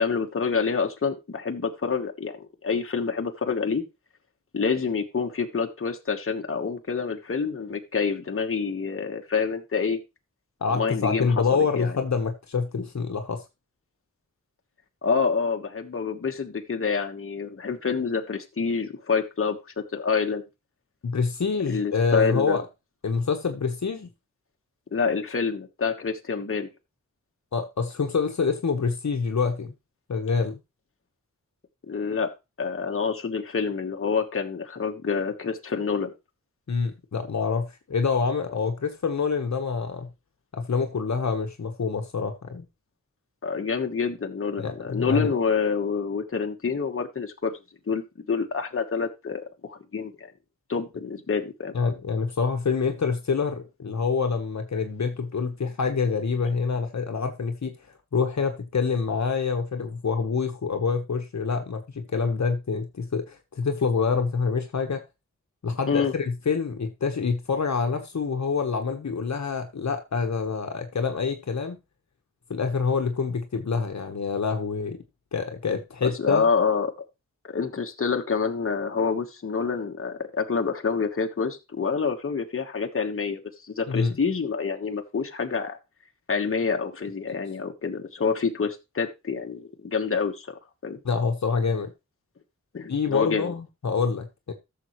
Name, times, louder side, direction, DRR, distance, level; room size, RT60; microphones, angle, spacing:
voice 1, 0.0-3.8 4.5-10.0 10.7-12.0 15.0-20.4 21.7-22.6 24.9-26.7 31.9-32.3 32.6-36.1 43.4-47.5 47.9-48.0 48.3-50.3 50.7-51.7 65.9-66.1 76.0-76.9 77.4-83.4 83.7-85.8 86.3-91.0 92.7-93.5, left 5 dB, 45° left, 1.4 m, -27 dB
voice 2, 10.6-13.4 21.0-22.6 23.0-24.1 27.5-29.7 30.1-30.6 36.7-40.1 40.5-42.6 44.6-45.3 51.7-57.7 58.1-65.0 65.6-71.8 72.5-75.0 75.3-76.5 83.9-84.2 91.0-91.9 92.9-94.5, left 5 dB, 65° left, 1.3 m, -26 dB
14.0 x 6.9 x 3.1 m
wide cardioid pair, 75°, 30 cm